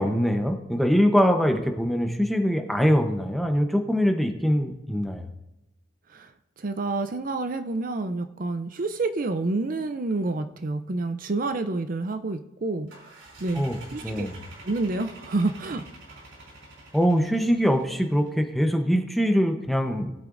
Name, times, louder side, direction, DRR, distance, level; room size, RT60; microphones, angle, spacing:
voice 1, 0.0-5.3 13.6-13.8 14.0-14.3 16.9-20.1, equal, ahead, 4 dB, 0.8 m, -23 dB
voice 2, 6.1-12.9 13.4-13.6 13.9-14.3 14.6-16.2, right 3 dB, 45° right, 9 dB, 0.5 m, -29 dB
sound 1, 12.9-18.4, right 2 dB, 80° right, 3.4 m, -47 dB
18.5 x 8.5 x 2.6 m, 0.96 s
head